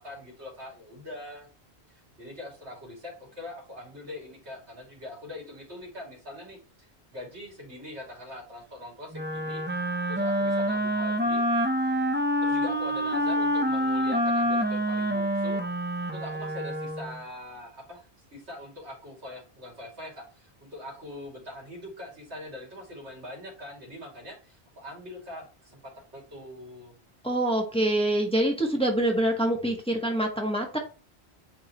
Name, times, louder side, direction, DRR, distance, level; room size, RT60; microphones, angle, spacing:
voice 1, 0.0-1.5 1.9-9.6 10.1-11.4 12.4-15.6 16.1-27.0, left 1 dB, 85° right, -2 dB, 3.1 m, -43 dB
Wind instrument woodwind instrument, 9.1-17.2, equal, 10° right, 0.7 m, -27 dB
voice 2, 27.2-30.8, right 1 dB, 5° left, 1 dB, 1.4 m, -25 dB
9.2 x 3.8 x 3.1 m, 0.36 s
omnidirectional pair, 1.1 m